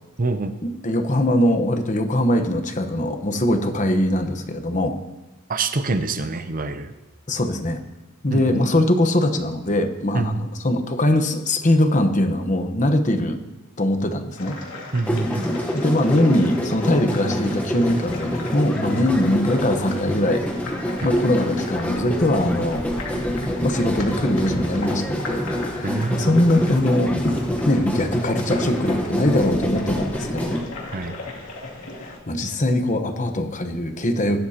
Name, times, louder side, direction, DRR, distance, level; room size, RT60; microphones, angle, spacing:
voice 1, 0.2-0.6 5.5-6.9 8.3-8.6 10.1-10.5 14.9-15.5 21.0-21.1 25.8-26.3 30.9-31.1, right 3 dB, 40° right, 10 dB, 0.6 m, -25 dB
voice 2, 0.8-5.0 7.3-7.8 8.2-13.4 13.8-14.6 15.7-20.4 21.0-22.8 23.6-25.5 25.8-27.4 27.6-30.6 32.0-34.4, left 1 dB, 35° left, 6 dB, 1.0 m, -21 dB
sound 1, 14.4-32.2, left 2 dB, 75° left, 2.6 m, -36 dB
sound 2, 15.0-30.6, equal, 5° left, 1.0 m, -27 dB
18.5 x 12.5 x 2.9 m, 1.0 s
head